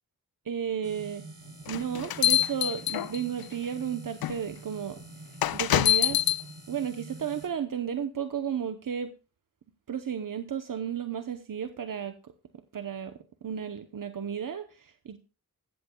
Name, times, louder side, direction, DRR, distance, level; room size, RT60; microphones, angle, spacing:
voice 1, 0.4-1.2 1.7-5.0 5.5-6.3 6.7-9.1 9.9-12.3 12.7-15.2, right 8 dB, 60° right, 9 dB, 0.9 m, -33 dB
sound 1, 0.8-7.5, right 3 dB, 40° right, 3.1 m, -47 dB
sound 2, 1.7-3.4 4.2-4.3 5.4-6.4, left 12 dB, 80° left, 0.5 m, -25 dB
14.5 x 13.5 x 2.3 m, 0.33 s
cardioid pair, 50°, 36 cm